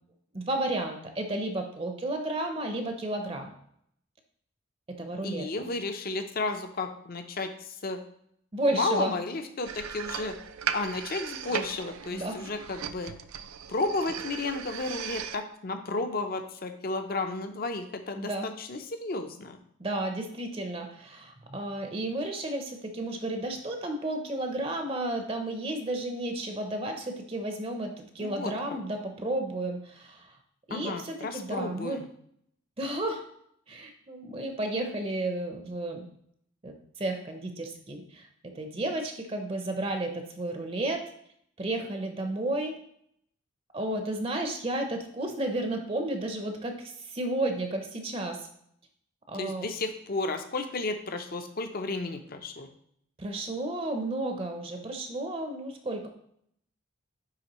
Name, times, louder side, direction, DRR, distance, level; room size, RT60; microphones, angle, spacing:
voice 1, 0.3-3.5 4.9-5.5 8.5-9.1 12.1-12.4 18.2-18.5 19.8-30.3 30.7-32.0 32.8-33.2 33.7-36.1 36.6-41.0 41.6-42.8 43.7-48.5 49.3-49.7 53.2-56.1, right 1 dB, 25° right, 5 dB, 0.6 m, -32 dB
voice 2, 5.2-8.0 8.7-10.4 10.7-13.1 13.7-19.6 28.2-28.8 30.7-32.1 49.3-52.7, left 3 dB, 45° left, 7 dB, 0.5 m, -33 dB
sound 1, 9.6-15.4, right 8 dB, 90° right, 0.4 m, -37 dB
9.7 x 3.4 x 3.0 m, 0.69 s
head